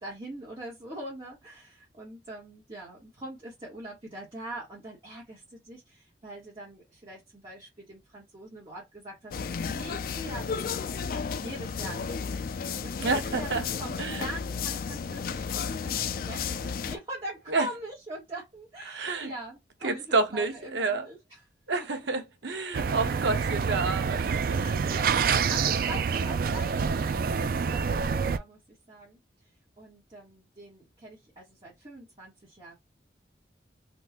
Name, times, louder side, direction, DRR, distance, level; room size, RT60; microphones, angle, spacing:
voice 1, 0.0-21.4 21.8-22.1 22.9-23.0 24.5-32.7, right 1 dB, 30° right, 1.3 m, -43 dB
sound 1, 9.3-17.0, left 6 dB, 55° left, 0.3 m, -33 dB
voice 2, 13.0-13.6 14.0-14.3 17.5-17.7 18.9-19.3 19.8-21.1 21.7-24.6, right 3 dB, 85° right, 0.9 m, -29 dB
sound 2, 22.7-28.4, right 6 dB, 55° right, 0.3 m, -27 dB
3.6 x 2.5 x 2.9 m
head